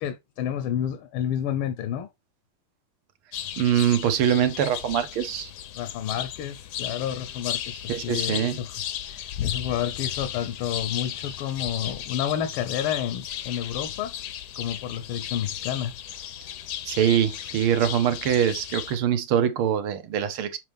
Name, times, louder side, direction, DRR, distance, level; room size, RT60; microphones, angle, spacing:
voice 1, 0.0-2.1 5.7-8.8 9.1-14.1 14.6-15.9, left 10 dB, 85° left, 1.6 m, -30 dB
sound 1, 3.3-19.0, left 10 dB, 65° left, 1.1 m, -35 dB
voice 2, 3.6-5.5 7.9-8.6 16.9-20.6, right 9 dB, 85° right, 1.8 m, -23 dB
6.8 x 4.6 x 3.5 m
omnidirectional pair, 2.3 m